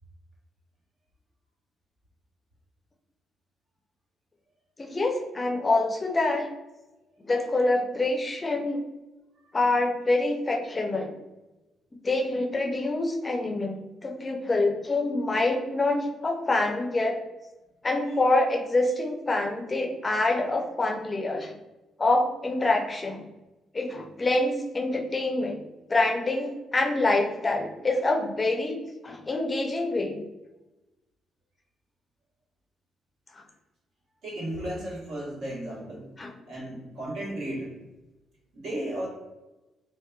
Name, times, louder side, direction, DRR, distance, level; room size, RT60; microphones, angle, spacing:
voice 1, 4.8-6.5 7.3-8.8 9.5-11.1 12.0-17.2 17.8-21.5 22.0-23.2 23.7-25.6 25.9-28.8 29.0-30.2 36.2-36.3, left 2 dB, 25° left, 1 dB, 0.4 m, -26 dB
voice 2, 34.2-36.1 36.5-37.7 38.5-39.1, right 1 dB, 75° right, -6 dB, 1.2 m, -34 dB
2.8 x 2.1 x 2.2 m, 1.0 s
cardioid pair, 90°, 0 cm